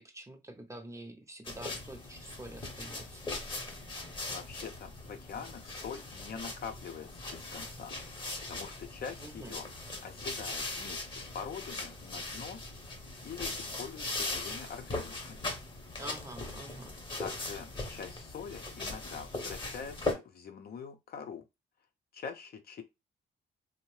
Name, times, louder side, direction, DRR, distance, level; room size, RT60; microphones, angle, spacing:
voice 1, 0.0-3.2 9.2-9.5 16.0-16.9, right 1 dB, 15° right, 0.6 m, -46 dB
sound 1, 1.4-20.1, left 2 dB, 25° left, 0.9 m, -40 dB
voice 2, 4.0-8.0 8.5-9.7 10.0-12.6 13.2-15.5 17.2-21.4 22.1-22.8, left 6 dB, 50° left, 0.6 m, -44 dB
2.7 x 2.1 x 3.1 m
cardioid pair, 90°, 20 cm